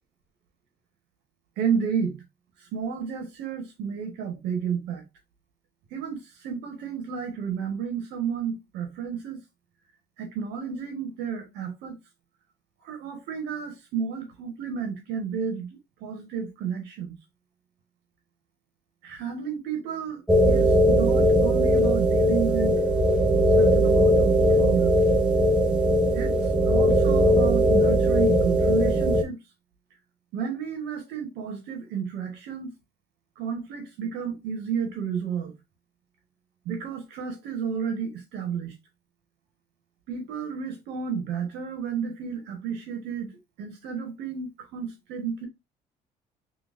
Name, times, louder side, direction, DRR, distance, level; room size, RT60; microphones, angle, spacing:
voice 1, 1.6-2.2 2.6-5.0 5.9-9.4 10.2-12.0 12.8-15.7 16.0-17.1 19.0-22.8 23.5-25.1 26.1-29.4 30.3-32.7 33.4-35.5 36.6-38.7 40.1-43.3 43.6-45.5, right 6 dB, 90° right, 1.3 m, -32 dB
sound 1, 20.3-29.2, equal, 5° right, 0.6 m, -20 dB
4.0 x 2.8 x 2.5 m
cardioid pair, 110°, 17 cm